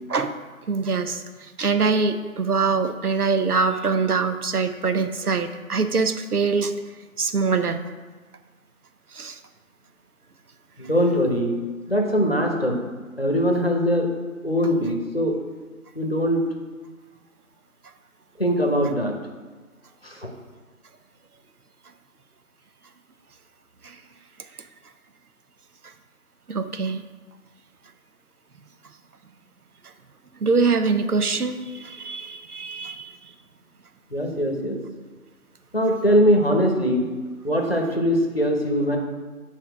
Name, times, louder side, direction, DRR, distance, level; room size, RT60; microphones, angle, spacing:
voice 1, 0.7-6.7 7.2-7.8 9.1-9.4 23.8-23.9 26.5-27.0 30.4-33.1, right 4 dB, 85° right, 9 dB, 0.8 m, -24 dB
voice 2, 10.8-11.6 11.9-12.8 13.2-14.1 14.4-15.3 16.0-16.4 18.4-19.2 20.0-20.3 34.1-34.8 35.7-37.1 37.4-39.0, equal, 40° left, 2 dB, 0.9 m, -21 dB
8.2 x 4.4 x 4.5 m, 1.4 s
figure-of-eight pair, 180°, 44 cm